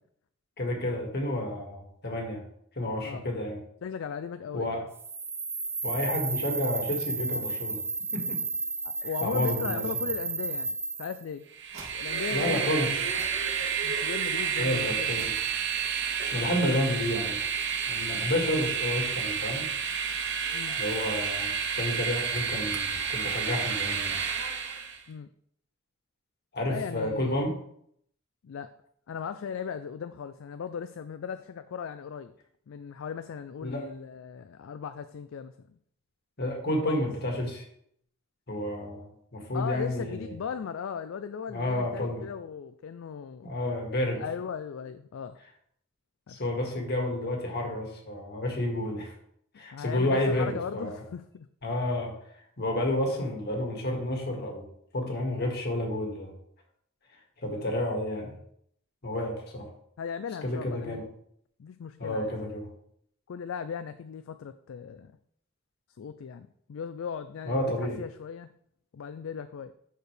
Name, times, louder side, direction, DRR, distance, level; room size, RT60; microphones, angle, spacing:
voice 1, 0.6-2.4 2.8-3.6 4.5-4.8 5.8-7.8 8.1-8.4 9.2-10.1 12.3-12.9 14.6-15.3 16.3-17.4 17.9-19.6 20.8-24.2 26.5-27.6 33.6-33.8 36.4-37.6 38.5-40.3 41.5-42.2 43.4-44.2 46.3-49.1 49.6-51.0 51.6-52.1 52.6-54.7 54.9-56.3 57.4-58.3 59.0-59.7 60.4-61.1 62.0-62.7 67.5-68.0, left 1 dB, 55° left, 1 dB, 1.9 m, -30 dB
voice 2, 3.8-4.8 8.8-11.4 11.9-12.6 13.8-15.3 20.5-20.8 25.1-25.3 26.7-27.4 28.4-28.7 29.1-32.3 32.7-35.8 36.8-37.0 39.5-43.5 44.2-45.4 46.3-46.4 49.7-51.5 57.4-57.6 60.0-61.0 61.6-62.3 63.3-65.1 66.0-68.5 68.9-69.7, left 7 dB, 70° left, 11 dB, 0.4 m, -37 dB
sound 1, 4.9-11.2, right 4 dB, 10° right, 0.5 m, -32 dB
Train, 11.5-25.0, right 7 dB, 60° right, 1.0 m, -30 dB
sound 2, 11.7-12.5 13.2-14.1 15.2-16.1, right 2 dB, 80° right, 2.4 m, -49 dB
11.0 x 4.6 x 3.3 m, 0.69 s
head